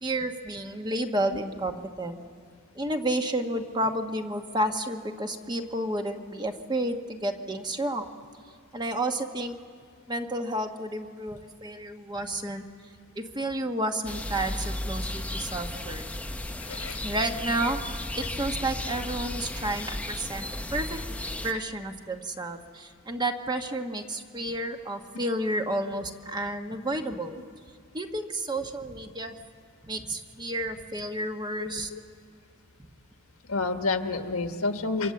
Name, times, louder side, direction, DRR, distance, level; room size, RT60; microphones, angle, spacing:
voice 1, 0.0-2.2 2.7-8.1 8.7-9.6 10.1-12.6 13.1-16.0 17.0-20.4 20.7-21.0 21.4-27.3 27.9-29.4 29.8-31.9, right 1 dB, 20° right, 5 dB, 1.1 m, -31 dB
sound 1, 14.0-21.5, left 1 dB, 5° left, 0.6 m, -34 dB
voice 2, 16.6-17.0 19.6-19.7 31.6-32.0 33.5-35.1, left 3 dB, 80° left, 6 dB, 1.5 m, -30 dB
26.5 x 25.5 x 7.7 m, 2.3 s
head